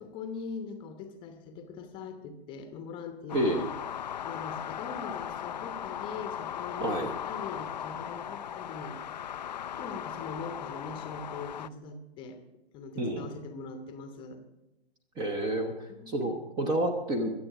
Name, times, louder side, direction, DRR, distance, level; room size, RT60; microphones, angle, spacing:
voice 1, 0.0-3.6 4.2-9.0 9.8-12.4 12.7-14.4 15.9-16.4, left 4 dB, 15° left, 7 dB, 1.0 m, -42 dB
sound 1, 3.3-11.7, left 9 dB, 45° left, 0.4 m, -38 dB
voice 2, 3.3-3.6 6.8-7.1 13.0-13.3 15.2-17.3, right 1 dB, 15° right, 6 dB, 0.8 m, -29 dB
23.0 x 7.8 x 4.8 m, 0.95 s
figure-of-eight pair, 130°, 32 cm